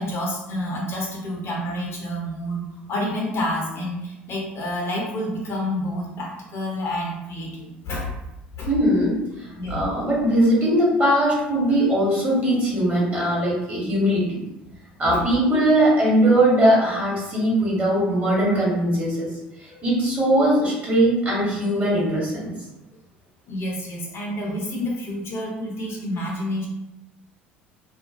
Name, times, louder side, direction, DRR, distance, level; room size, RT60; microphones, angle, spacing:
voice 1, 0.0-2.6 2.9-8.2 8.6-8.7 9.5-9.9 15.1-15.2 19.7-19.9 23.5-26.7, left 1 dB, 45° left, -2 dB, 0.6 m, -29 dB
voice 2, 8.7-9.2 9.7-14.4 15.0-19.3 19.8-22.5, right 1 dB, 30° right, -5 dB, 1.2 m, -20 dB
2.4 x 2.1 x 2.5 m, 0.93 s
hypercardioid pair, 65°, 6 cm